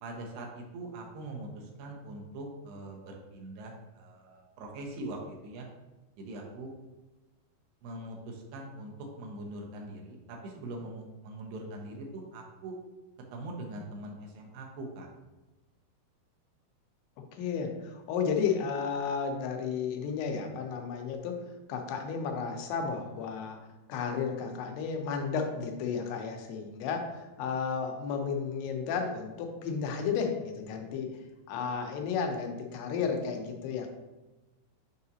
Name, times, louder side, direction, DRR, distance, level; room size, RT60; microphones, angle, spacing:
voice 1, 0.0-5.7 6.2-6.7 7.8-12.8 13.3-15.1, right 1 dB, 80° right, 1 dB, 2.9 m, -42 dB
voice 2, 17.3-21.4 21.7-23.6 23.9-31.1 31.5-33.9, left 6 dB, 85° left, 3 dB, 2.9 m, -33 dB
7.1 x 4.8 x 2.8 m, 1.1 s
omnidirectional pair, 4.6 m